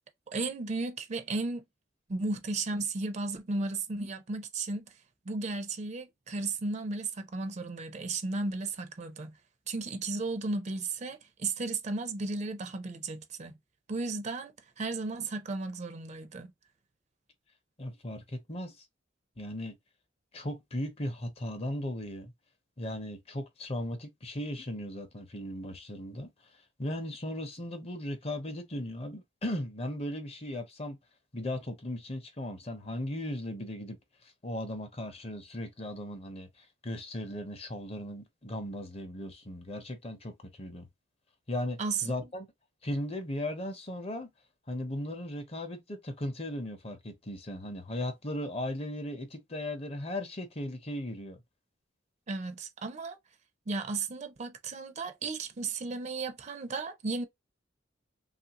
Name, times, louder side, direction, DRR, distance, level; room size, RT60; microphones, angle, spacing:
voice 1, 0.3-1.6 2.1-4.8 5.3-9.3 9.7-13.5 13.9-16.5 41.8-42.1 52.3-53.2 53.7-57.2, right 3 dB, 35° right, 0.4 m, -34 dB
voice 2, 17.8-18.8 19.4-19.8 20.3-22.3 22.8-31.0 31.3-34.0 34.4-40.9 41.5-42.5 42.8-44.3 44.7-51.4, left 1 dB, 30° left, 0.6 m, -37 dB
3.1 x 2.5 x 2.8 m
head